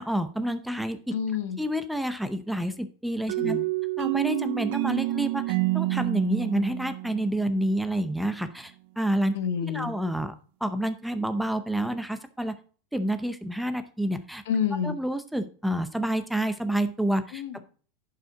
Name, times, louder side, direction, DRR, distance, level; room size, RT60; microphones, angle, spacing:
voice 1, 0.0-1.0 1.6-3.6 4.0-9.3 9.6-10.3 10.6-12.5 12.9-14.4 14.8-17.4, right 1 dB, ahead, 10 dB, 0.6 m, -28 dB
voice 2, 1.1-1.6 3.2-3.6 7.4-7.7 9.3-9.9 14.5-15.0 17.3-17.6, left 7 dB, 80° left, 9 dB, 1.3 m, -29 dB
sound 1, 3.3-8.0, right 19 dB, 65° right, 0.3 m, -28 dB
11.0 x 5.6 x 3.7 m, 0.40 s
supercardioid pair, 145°, 0 cm